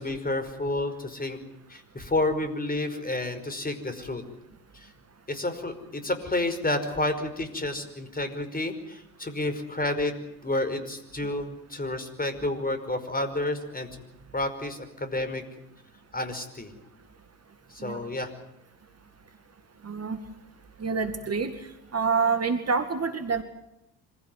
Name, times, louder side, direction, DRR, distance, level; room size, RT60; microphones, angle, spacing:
voice 1, 0.0-1.4 1.7-4.2 4.7-4.9 5.3-10.1 10.4-14.0 14.3-15.4 16.1-16.7 17.7-18.3, left 2 dB, 20° left, 8 dB, 5.2 m, -30 dB
voice 2, 19.8-20.2 20.8-21.5 21.9-23.4, right 5 dB, 30° right, 8 dB, 2.3 m, -27 dB
25.5 x 16.5 x 9.4 m, 0.86 s
hypercardioid pair, 60°, 49 cm